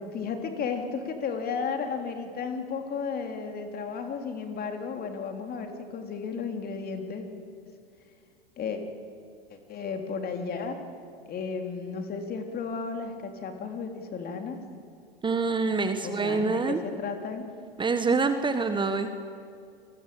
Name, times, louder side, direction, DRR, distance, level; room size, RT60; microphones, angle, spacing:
voice 1, 0.0-7.2 8.6-8.8 9.5-10.8 11.3-14.6 16.0-17.5, left 5 dB, 30° left, 5 dB, 3.7 m, -33 dB
voice 2, 15.2-16.8 17.8-19.1, right 4 dB, 15° right, 8 dB, 1.5 m, -26 dB
27.0 x 21.5 x 8.8 m, 2.4 s
hypercardioid pair, 90°, 29 cm